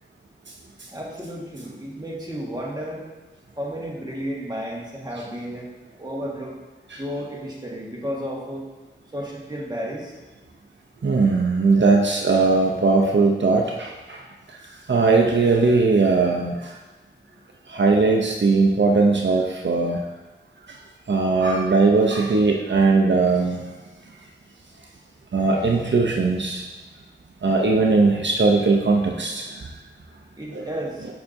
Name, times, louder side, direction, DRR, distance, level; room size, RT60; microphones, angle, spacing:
voice 1, 0.9-3.1 3.6-5.7 6.0-6.6 7.0-8.6 9.1-10.2 17.3-17.7 30.3-31.1, equal, 20° right, -4 dB, 1.5 m, -32 dB
voice 2, 11.0-14.2 14.9-16.6 17.7-20.0 21.1-23.6 25.3-26.6 27.4-29.5 30.5-30.6, right 3 dB, 75° right, 0 dB, 0.6 m, -19 dB
6.9 x 6.5 x 2.6 m, 1.1 s
wide cardioid pair, 50°, 19 cm